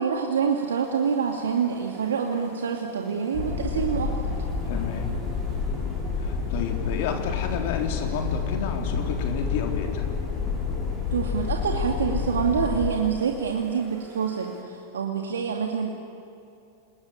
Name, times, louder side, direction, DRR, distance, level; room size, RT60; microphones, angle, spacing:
voice 1, 0.0-4.3 11.1-15.9, right 6 dB, 80° right, 2 dB, 2.2 m, -26 dB
sound 1, 0.5-14.6, right 2 dB, 30° right, 6.1 m, -49 dB
sound 2, 3.3-12.9, left 5 dB, 45° left, 5.5 m, -29 dB
voice 2, 4.7-5.1 6.2-10.1, left 7 dB, 60° left, 4 dB, 3.7 m, -31 dB
28.5 x 21.0 x 9.0 m, 2.7 s
hypercardioid pair, 100°, 0 cm